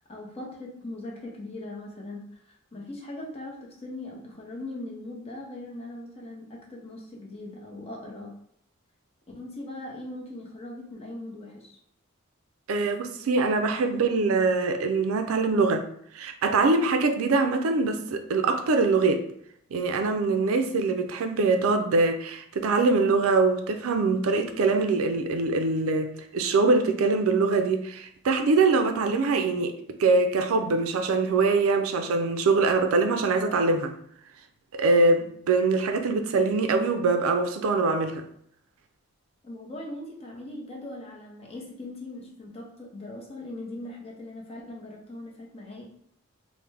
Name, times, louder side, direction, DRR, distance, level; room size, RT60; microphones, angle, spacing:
voice 1, 0.0-8.4 9.3-11.8 39.4-45.9, left 1 dB, 30° left, 0.6 m, -40 dB
voice 2, 12.7-15.8 16.1-19.2 19.7-29.7 30.0-33.9 34.7-38.2, right 3 dB, 75° right, 0.4 m, -23 dB
3.2 x 2.1 x 3.3 m
head